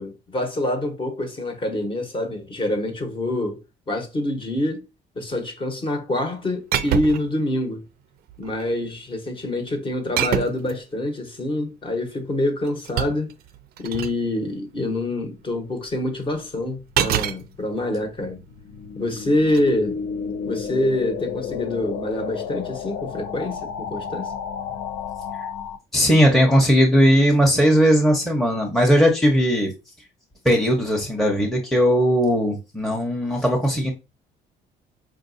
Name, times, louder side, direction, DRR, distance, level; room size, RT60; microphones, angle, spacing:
voice 1, 0.0-3.6 3.9-4.9 5.1-7.8 8.4-13.3 13.8-18.4 18.9-20.0 20.4-24.3, left 1 dB, 30° left, 1.1 m, -26 dB
sound 1, 6.7-7.4 8.3-8.7 10.2-10.7 12.4-14.2 16.9-17.4 19.4-19.6, right 10 dB, 65° right, 0.4 m, -25 dB
sound 2, 16.4-25.8, left 7 dB, 85° left, 0.5 m, -32 dB
voice 2, 25.9-29.7 30.4-33.9, equal, ahead, 0.8 m, -18 dB
4.7 x 2.5 x 2.6 m
cardioid pair, 110°, 17 cm